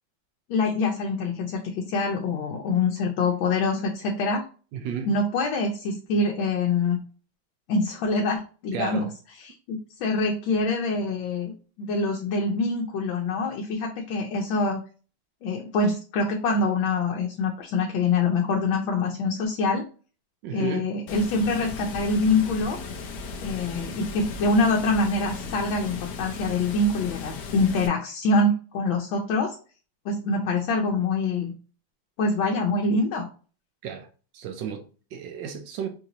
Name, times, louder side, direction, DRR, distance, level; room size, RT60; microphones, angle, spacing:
voice 1, 0.5-4.4 5.1-7.0 7.7-9.1 9.4-11.5 11.9-14.8 15.4-19.8 20.5-22.8 23.4-29.6 30.0-31.5 32.2-33.3, left 3 dB, 85° left, 1.4 m, -25 dB
voice 2, 4.7-5.1 8.7-9.1 20.4-20.9 33.8-34.1 34.3-35.9, right 7 dB, 75° right, 1.2 m, -33 dB
Water, 21.1-27.9, left 4 dB, 65° left, 1.0 m, -36 dB
4.6 x 2.6 x 2.9 m
omnidirectional pair, 2.1 m